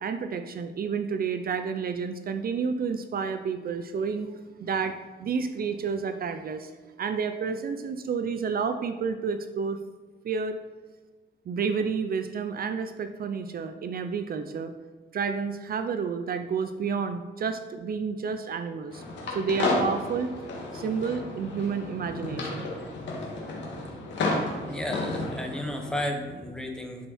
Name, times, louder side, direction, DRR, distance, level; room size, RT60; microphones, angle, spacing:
voice 1, 0.0-4.3 4.6-6.7 7.0-9.8 10.2-10.6 11.5-14.7 15.1-20.3 20.7-22.7, right 5 dB, 55° right, 9 dB, 0.6 m, -30 dB
sound 1, 18.9-26.0, left 2 dB, 80° left, 2.1 m, -32 dB
voice 2, 24.7-27.1, left 1 dB, 5° left, 2 dB, 1.3 m, -33 dB
11.5 x 5.6 x 4.3 m, 1.4 s
cardioid pair, 125°, 18 cm